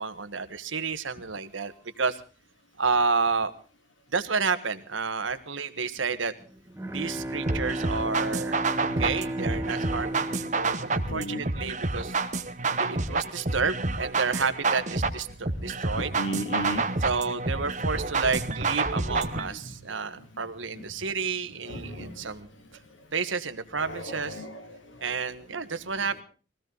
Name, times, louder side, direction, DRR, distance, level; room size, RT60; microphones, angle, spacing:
voice 1, 0.0-2.2 2.8-3.5 4.1-6.3 6.9-12.2 12.8-16.1 17.0-22.5 23.1-24.4 25.0-26.2, right 5 dB, 85° right, 10 dB, 1.5 m, -30 dB
Bowed string instrument, 6.4-11.9, right 1 dB, 15° right, 1.1 m, -34 dB
sound 1, 7.5-19.5, right 3 dB, 40° right, 1.3 m, -29 dB
voice 2, 11.1-11.5 16.0-16.9 18.4-19.8 20.1-20.2 20.7-20.9 21.6-22.3 23.7-25.3, equal, 80° left, 7 dB, 2.5 m, -36 dB
21.5 x 16.5 x 4.0 m, 0.37 s
head